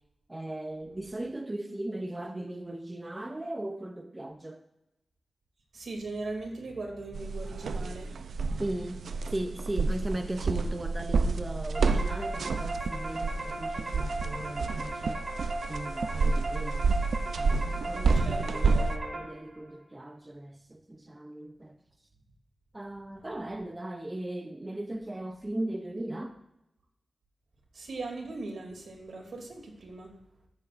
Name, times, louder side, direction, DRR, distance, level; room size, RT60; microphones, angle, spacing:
voice 1, 0.3-4.6 8.6-9.1 9.3-15.3 15.6-16.9 17.4-21.8 22.7-26.4, right 1 dB, 20° right, 6 dB, 0.6 m, -37 dB
voice 2, 5.7-8.1 18.2-19.2 27.7-30.1, right 3 dB, 75° right, 1 dB, 2.6 m, -39 dB
sound 1, 7.1-19.0, right 4 dB, 90° right, 0.5 m, -29 dB
sound 2, 11.7-19.6, right 2 dB, 40° right, 3.5 m, -37 dB
13.5 x 8.2 x 2.5 m, 0.89 s
wide cardioid pair, 90°, 0 cm